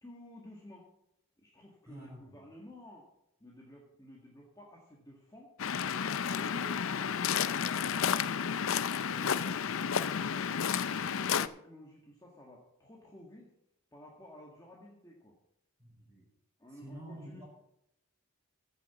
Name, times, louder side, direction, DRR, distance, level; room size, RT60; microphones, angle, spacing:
voice 1, 0.0-0.9 1.4-3.1 3.4-5.5 9.2-13.5 13.9-15.4 16.6-17.4, equal, 15° left, -3 dB, 1.7 m, -53 dB
voice 2, 1.9-2.4 15.8-16.3 16.7-17.4, equal, 15° right, -3 dB, 5.5 m, -48 dB
Waves surf, 5.6-11.5, left 7 dB, 65° left, 0.5 m, -31 dB
15.0 x 6.9 x 6.0 m, 0.78 s
head